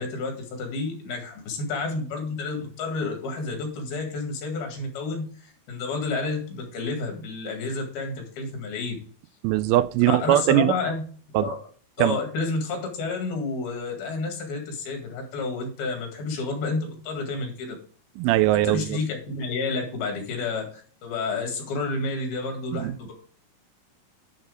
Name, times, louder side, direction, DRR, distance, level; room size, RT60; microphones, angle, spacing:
voice 1, 0.0-9.0 10.1-11.0 11.4-11.6 12.0-17.8 18.5-23.1, left 3 dB, 75° left, 3.8 m, -30 dB
voice 2, 9.4-10.7 11.3-11.5 12.0-12.1 18.2-18.8 22.8-22.9, right 15 dB, 80° right, 2.3 m, -20 dB
10.5 x 4.4 x 4.9 m
omnidirectional pair, 4.4 m